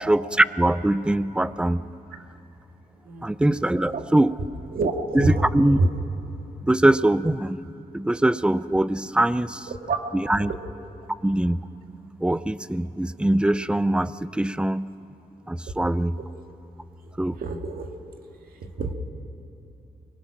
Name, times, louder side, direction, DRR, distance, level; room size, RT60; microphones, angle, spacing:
voice 1, 0.1-1.8 3.2-4.3 5.1-5.8 6.6-7.7 7.9-9.7 10.1-10.5 11.2-11.6 12.2-14.9 15.5-16.2 17.2-17.4, right 1 dB, 5° right, 15 dB, 0.5 m, -22 dB
voice 2, 4.7-5.9 9.9-10.0 16.4-16.5 17.4-17.9 18.6-18.9, right 2 dB, 75° right, 4 dB, 1.8 m, -26 dB
24.5 x 22.5 x 6.0 m, 3.0 s
wide cardioid pair, 110°, 15 cm